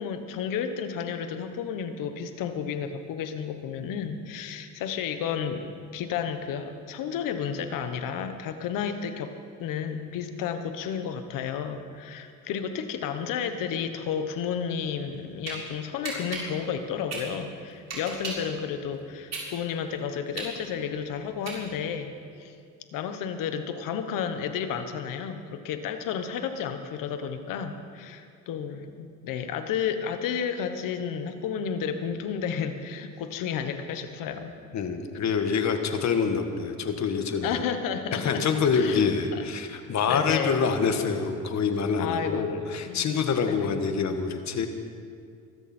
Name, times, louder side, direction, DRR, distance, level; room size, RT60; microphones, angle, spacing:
voice 1, 0.0-22.5 22.9-34.5 37.4-38.5 38.7-39.4 40.1-40.6 42.0-43.1 43.4-43.8, left 7 dB, 90° left, 8 dB, 1.3 m, -32 dB
sound 1, 15.0-15.6 16.0-18.5 18.9-22.0, right 4 dB, 55° right, 5.3 m, -36 dB
voice 2, 34.7-37.6 38.1-44.7, left 5 dB, 60° left, 6 dB, 1.7 m, -26 dB
23.5 x 13.5 x 4.5 m, 2.3 s
cardioid pair, 95°, 32 cm